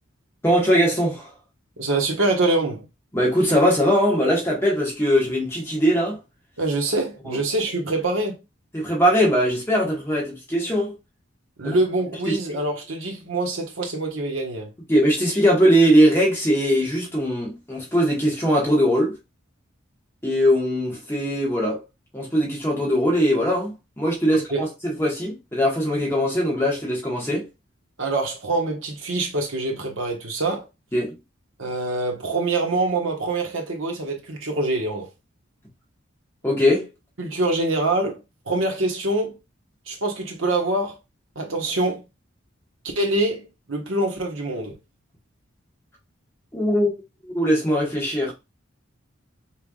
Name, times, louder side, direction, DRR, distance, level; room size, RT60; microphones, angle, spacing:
voice 1, 0.4-1.3 3.1-6.2 7.2-7.4 8.7-11.0 11.6-11.8 12.3-12.6 14.9-19.2 20.2-21.8 22.1-27.5 30.9-31.1 36.4-36.9 46.5-46.9 47.2-48.3, equal, 10° left, 1.6 m, -21 dB
voice 2, 1.8-2.9 6.6-8.4 11.6-14.7 24.3-24.6 28.0-30.6 31.6-35.1 37.2-38.2 38.5-39.3 39.9-41.0 41.3-42.0 42.9-43.4 43.7-44.8, right 2 dB, 80° right, 1.4 m, -25 dB
5.7 x 3.4 x 2.4 m
head